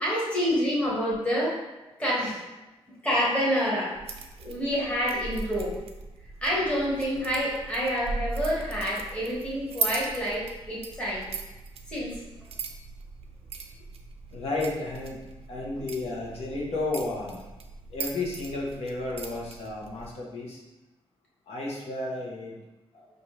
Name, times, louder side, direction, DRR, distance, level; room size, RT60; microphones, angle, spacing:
voice 1, 0.0-1.5 2.0-2.4 3.0-4.0 4.4-5.8 6.4-11.3 11.9-12.2, equal, 10° left, -7 dB, 1.2 m, -27 dB
sound 1, 3.9-20.1, right 4 dB, 70° right, 0.4 m, -39 dB
voice 2, 14.3-15.2 15.5-17.4 17.9-20.6 21.5-22.5 22.9-23.0, left 2 dB, 80° left, -4 dB, 0.9 m, -32 dB
5.2 x 2.6 x 3.0 m, 1.0 s
wide cardioid pair, 160°, 11 cm